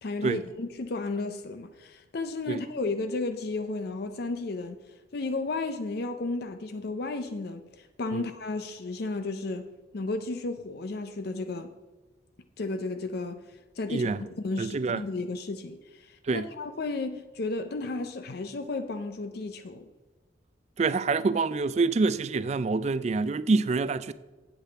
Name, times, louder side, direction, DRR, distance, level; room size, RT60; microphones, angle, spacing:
voice 1, 0.0-4.8 5.1-9.7 9.9-11.7 12.6-13.4 13.8-19.9, left 3 dB, 50° left, 0.5 m, -33 dB
voice 2, 13.9-14.2 14.6-15.0 16.2-16.5 20.8-24.1, right 4 dB, 35° right, 0.3 m, -26 dB
8.5 x 8.0 x 4.5 m
head